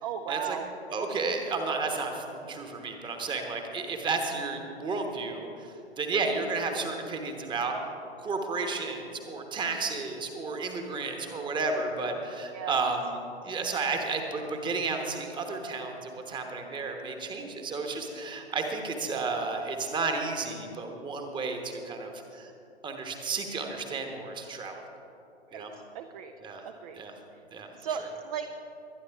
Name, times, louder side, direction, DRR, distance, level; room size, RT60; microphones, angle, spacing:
voice 1, 0.0-0.7 6.1-6.2 12.5-12.8 25.5-25.7 25.9-26.3 26.6-27.0 27.8-28.5, right 8 dB, 35° right, 7 dB, 0.6 m, -35 dB
voice 2, 0.9-7.8 8.2-13.2 13.4-22.5 22.8-24.8 25.5-25.7 26.4-26.6 26.9-27.1 27.5-27.7, right 4 dB, 15° right, 4 dB, 1.2 m, -32 dB
22.5 x 10.0 x 3.5 m, 2.9 s
figure-of-eight pair, 110°, 33 cm